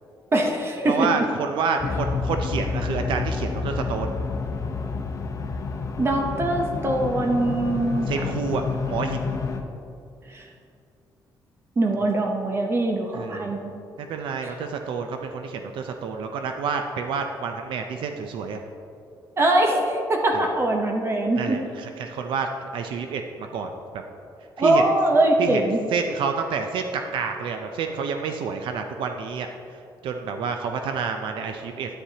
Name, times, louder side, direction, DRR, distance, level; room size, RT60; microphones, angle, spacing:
voice 1, 0.3-1.1 6.0-8.3 10.3-10.4 11.8-13.7 19.4-21.6 24.6-25.8, right 1 dB, 30° right, 2 dB, 0.8 m, -22 dB
voice 2, 0.9-4.1 8.1-9.4 13.1-13.5 14.0-18.6 20.3-20.5 21.4-24.0 24.6-24.8 25.4-25.6 25.9-29.5 30.0-32.0, right 5 dB, 80° right, 5 dB, 0.5 m, -29 dB
sound 1, 1.8-9.6, left 4 dB, 40° left, 0.7 m, -29 dB
10.0 x 9.2 x 2.8 m, 2.5 s
cardioid pair, 125°, 8 cm